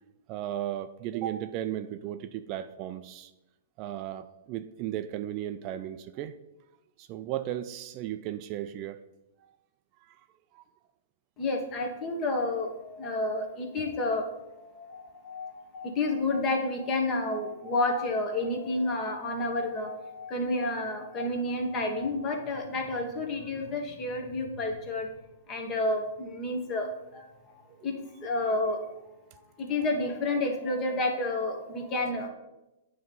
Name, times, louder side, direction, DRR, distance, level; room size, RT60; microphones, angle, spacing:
voice 1, 0.3-3.3 3.8-6.4 7.0-9.0 9.4-9.5 10.0-10.2 10.5-10.6 21.7-22.0 27.8-27.9, right 12 dB, 40° right, 10 dB, 0.4 m, -35 dB
voice 2, 11.4-25.1 25.5-27.3 27.8-28.9 29.6-32.3, left 2 dB, 30° left, 3 dB, 1.5 m, -30 dB
9.3 x 3.2 x 5.3 m, 0.95 s
hypercardioid pair, 125°, 0 cm